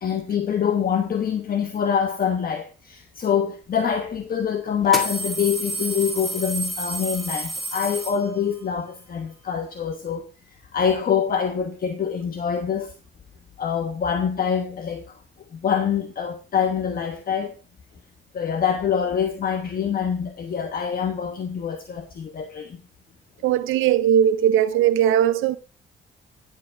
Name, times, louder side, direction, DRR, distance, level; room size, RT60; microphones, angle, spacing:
voice 1, 0.0-10.3 10.7-12.9 13.6-15.0 15.5-17.5 18.3-22.8, left 7 dB, 45° left, 1.2 m, -25 dB
sound 1, 3.7-3.8 4.8-8.6, right 2 dB, ahead, 2.6 m, -30 dB
voice 2, 23.4-25.6, right 10 dB, 90° right, 0.7 m, -19 dB
10.0 x 7.6 x 4.6 m
cardioid pair, 90°, 20 cm